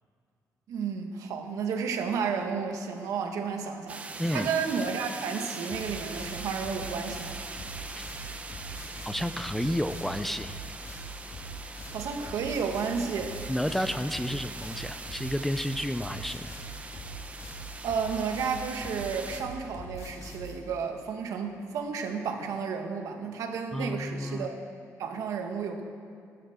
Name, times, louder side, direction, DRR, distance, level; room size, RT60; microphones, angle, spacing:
voice 1, 0.7-4.0 4.3-7.4 11.9-13.4 17.8-24.6 25.0-25.8, right 6 dB, 85° right, 4 dB, 1.7 m, -32 dB
sound 1, 3.9-19.4, right 3 dB, 25° right, 0.9 m, -42 dB
voice 2, 4.2-4.5 8.0-8.1 9.1-10.6 13.5-16.6 23.7-24.5, equal, 5° left, 10 dB, 0.4 m, -31 dB
sound 2, 5.7-20.6, right 1 dB, 70° left, 3.3 m, -42 dB
15.5 x 12.5 x 7.4 m, 2.3 s
cardioid pair, 165°, 6 cm